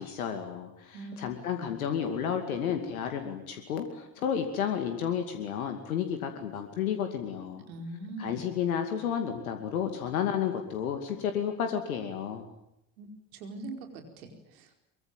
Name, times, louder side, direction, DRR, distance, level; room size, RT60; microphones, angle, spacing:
voice 1, 0.0-7.6 8.2-12.5, left 8 dB, 85° left, 6 dB, 2.5 m, -32 dB
voice 2, 7.7-8.4 13.0-14.7, right 2 dB, 80° right, 4 dB, 4.7 m, -42 dB
24.0 x 23.5 x 9.2 m, 0.80 s
hypercardioid pair, 55°, 42 cm